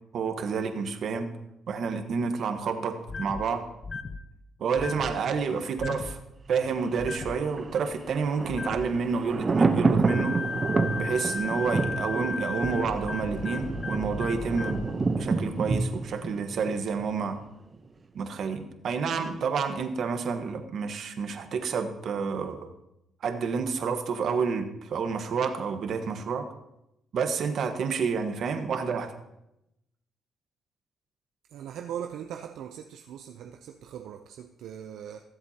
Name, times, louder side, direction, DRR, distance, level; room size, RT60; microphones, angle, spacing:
voice 1, 0.1-1.3 1.7-3.6 4.6-6.2 6.5-10.3 11.0-14.9 15.2-17.4 18.1-22.7 23.2-26.5 27.1-29.1, right 5 dB, 65° right, 6 dB, 1.3 m, -29 dB
sound 1, 3.1-3.4 3.8-4.2 4.8-5.1 5.8-6.1 7.0-7.4 8.5-8.9 10.1-14.9, left 4 dB, 40° left, 0.8 m, -35 dB
Thunder, 6.5-17.4 17.7-17.8, right 4 dB, 30° right, 0.8 m, -29 dB
voice 2, 31.5-35.2, right 9 dB, 80° right, 5 dB, 0.6 m, -40 dB
21.5 x 7.9 x 2.9 m, 0.86 s
cardioid pair, 90°, 0 cm